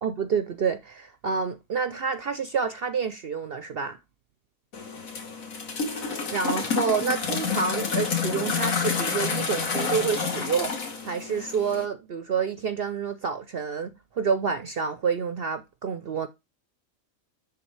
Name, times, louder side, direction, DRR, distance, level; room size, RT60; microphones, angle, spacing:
voice 1, 0.0-4.0 6.0-16.3, right 6 dB, 55° right, 0.7 m, -28 dB
sound 1, 4.7-11.8, left 5 dB, 75° left, 1.9 m, -29 dB
11.0 x 3.6 x 3.2 m
omnidirectional pair, 1.4 m